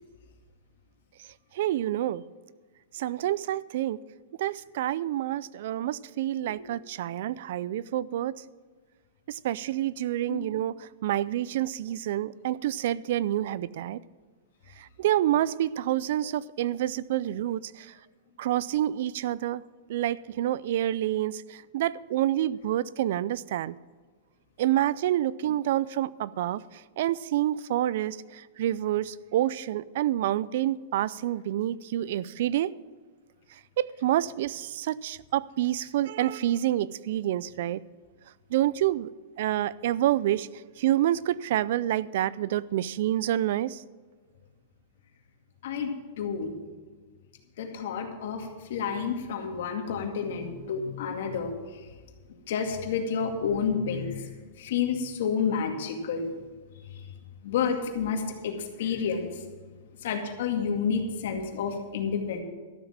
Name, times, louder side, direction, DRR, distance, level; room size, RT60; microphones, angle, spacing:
voice 1, 1.6-2.2 2.9-4.0 4.4-8.4 9.3-10.7 11.0-14.0 15.0-17.9 18.4-19.6 19.9-23.7 24.6-26.6 27.0-32.7 33.8-37.8 38.5-39.1 39.4-40.5 40.8-43.8, right 13 dB, 65° right, 0.4 m, -28 dB
voice 2, 46.2-46.5 47.6-51.5 52.5-54.2 54.6-56.3 57.4-59.3 60.0-62.4, left 6 dB, 65° left, 2.2 m, -29 dB
13.0 x 7.2 x 7.4 m
supercardioid pair, 150°, 0 cm